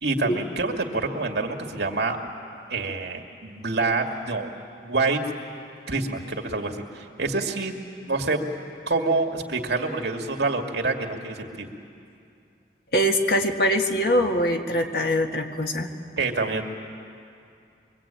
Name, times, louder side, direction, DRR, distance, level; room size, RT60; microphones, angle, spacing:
voice 1, 0.0-2.2 2.7-4.5 4.8-5.2 5.9-7.8 8.1-8.5 8.9-11.7 16.2-16.6, right 3 dB, 80° right, 3 dB, 2.2 m, -26 dB
voice 2, 12.9-15.9, equal, 60° left, 3 dB, 1.9 m, -23 dB
24.0 x 23.5 x 8.9 m, 2.5 s
head